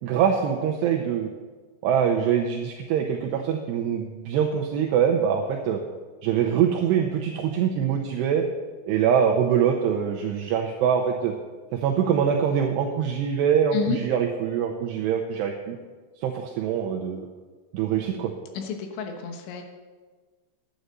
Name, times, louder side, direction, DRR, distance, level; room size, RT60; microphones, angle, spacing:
voice 1, 0.0-1.3 1.8-5.8 6.2-8.4 8.9-11.3 11.7-15.8 16.2-17.3 17.7-18.3, right 8 dB, 85° right, 2 dB, 2.4 m, -24 dB
voice 2, 18.5-19.6, left 6 dB, 75° left, 4 dB, 3.4 m, -30 dB
11.5 x 9.3 x 6.7 m, 1.4 s
omnidirectional pair, 5.8 m